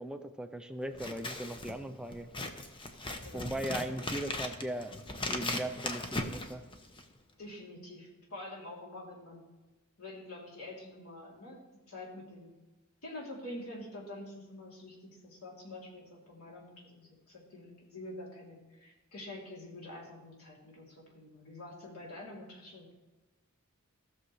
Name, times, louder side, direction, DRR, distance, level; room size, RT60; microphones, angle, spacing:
voice 1, 0.0-2.3 3.3-5.0 5.3-6.6, right 1 dB, 5° right, 7 dB, 0.4 m, -38 dB
Scissors, 0.9-7.2, left 2 dB, 25° left, 0.9 m, -38 dB
voice 2, 3.2-3.9 7.4-9.4 10.0-12.5 13.0-15.0 15.2-22.9, left 1 dB, 85° left, -3 dB, 3.0 m, -47 dB
15.5 x 6.7 x 3.2 m, 1.2 s
head